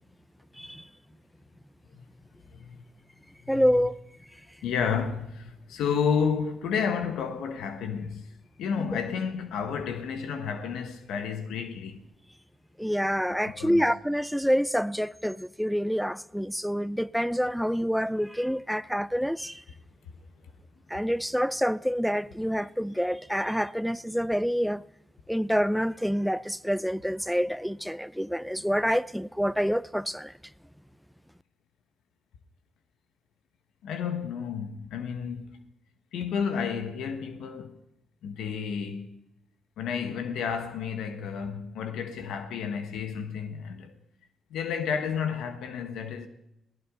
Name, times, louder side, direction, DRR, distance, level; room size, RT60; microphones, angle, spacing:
voice 1, 2.5-2.8 3.5-3.8 4.6-8.3 8.6-12.0 13.4-13.8 33.8-35.5 36.1-37.8 38.2-39.1 39.8-43.9 44.5-46.3, left 6 dB, 90° left, 1.3 m, -31 dB
voice 2, 3.5-3.9 12.8-19.6 20.9-24.8 25.3-30.3, equal, ahead, 0.5 m, -27 dB
22.0 x 16.5 x 3.8 m
cardioid pair, 75°, 0 cm